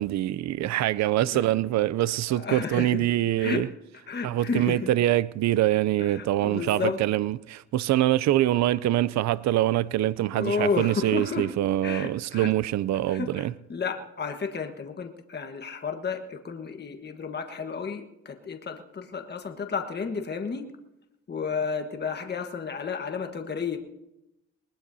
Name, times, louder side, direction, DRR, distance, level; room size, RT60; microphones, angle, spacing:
voice 1, 0.0-3.7 4.2-13.5, right 14 dB, 65° right, 0.5 m, -24 dB
voice 2, 2.3-3.1 3.4-3.6 4.1-4.9 6.0-7.0 10.3-11.5 11.8-12.5 13.1-20.7 21.3-23.8, left 5 dB, 35° left, 1.4 m, -32 dB
20.5 x 20.0 x 2.7 m
cardioid pair, 90°, 30 cm